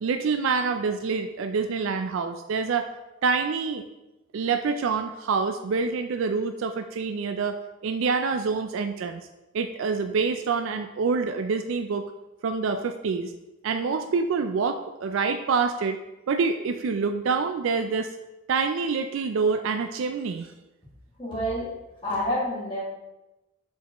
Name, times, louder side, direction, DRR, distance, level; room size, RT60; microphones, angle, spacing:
voice 1, 0.0-2.9 3.2-3.8 4.3-9.3 9.5-12.1 12.4-13.3 13.6-16.0 16.3-18.1 18.5-20.5, right 5 dB, 70° right, 7 dB, 0.4 m, -26 dB
voice 2, 21.2-21.7 22.0-22.8, equal, 25° left, -8 dB, 2.0 m, -28 dB
6.8 x 5.3 x 3.0 m, 0.99 s
head